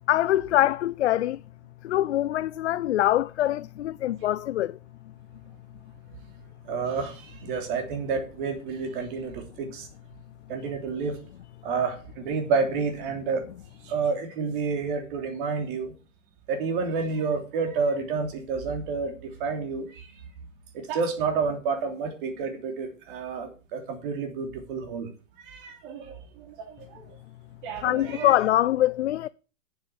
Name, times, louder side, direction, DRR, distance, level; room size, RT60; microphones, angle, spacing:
voice 1, 0.1-1.4 1.8-4.8 27.8-29.3, left 13 dB, 60° left, 0.5 m, -24 dB
voice 2, 6.6-9.9 10.5-11.2 11.6-13.5 13.8-15.9 16.5-20.1 20.7-25.1 25.4-27.1 27.6-28.4, right 5 dB, 40° right, 3.2 m, -30 dB
8.7 x 7.9 x 7.0 m
hypercardioid pair, 145°, 40 cm